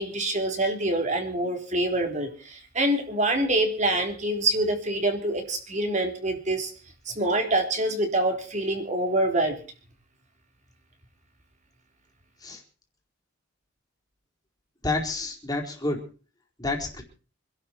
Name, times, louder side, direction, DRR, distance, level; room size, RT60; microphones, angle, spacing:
voice 1, 0.0-6.7 7.1-9.6, right 1 dB, 35° right, 4 dB, 3.7 m, -26 dB
voice 2, 14.8-16.0 16.6-17.0, left 2 dB, 20° left, 0 dB, 4.3 m, -29 dB
26.5 x 12.0 x 4.5 m, 0.39 s
head